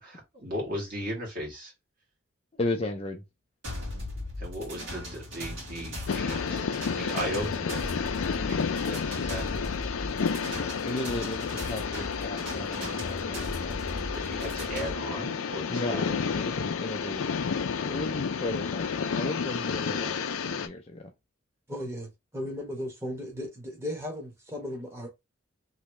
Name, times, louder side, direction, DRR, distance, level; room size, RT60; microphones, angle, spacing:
voice 1, 0.0-1.7 4.4-6.7 6.9-7.9 8.3-9.6 14.1-16.2, equal, 45° right, 1.7 m, -37 dB
voice 2, 2.6-3.2 10.7-13.8 15.7-17.4 17.8-18.9 19.2-20.2 20.5-21.1, left 2 dB, 30° left, 0.5 m, -35 dB
sound 1, 3.6-14.9, left 1 dB, 75° right, 1.7 m, -38 dB
sound 2, 6.1-20.7, left 6 dB, 85° left, 0.5 m, -31 dB
voice 3, 21.7-25.1, left 1 dB, 15° right, 1.1 m, -36 dB
3.0 x 2.7 x 3.1 m
head